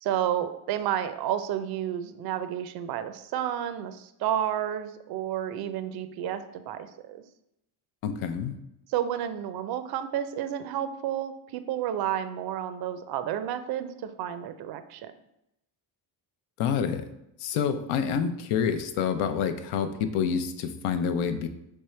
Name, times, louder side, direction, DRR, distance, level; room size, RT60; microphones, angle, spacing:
voice 1, 0.0-7.2 8.9-15.1, right 10 dB, 50° right, 11 dB, 0.5 m, -31 dB
voice 2, 8.0-8.6 16.6-17.1 17.4-21.5, left 7 dB, 80° left, 9 dB, 0.6 m, -27 dB
3.5 x 3.3 x 4.2 m, 0.84 s
cardioid pair, 95°, 50 cm